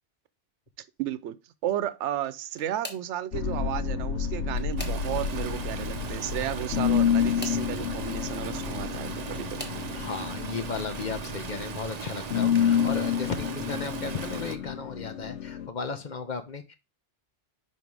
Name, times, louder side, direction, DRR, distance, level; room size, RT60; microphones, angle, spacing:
voice 1, 1.0-1.4 1.6-9.7, right 12 dB, 80° right, 0.9 m, -33 dB
sound 1, 2.1-3.2 4.1-5.4 7.0-7.7 8.8-9.9 10.6-11.0 11.4-11.5 12.8-12.9, left 1 dB, 10° left, 1.3 m, -44 dB
sound 2, 3.3-15.7, left 8 dB, 80° left, 0.9 m, -29 dB
Stream, 4.8-14.6, right 6 dB, 45° right, 0.6 m, -38 dB
voice 2, 9.9-16.7, left 4 dB, 45° left, 0.8 m, -35 dB
5.5 x 4.4 x 4.7 m
omnidirectional pair, 1.2 m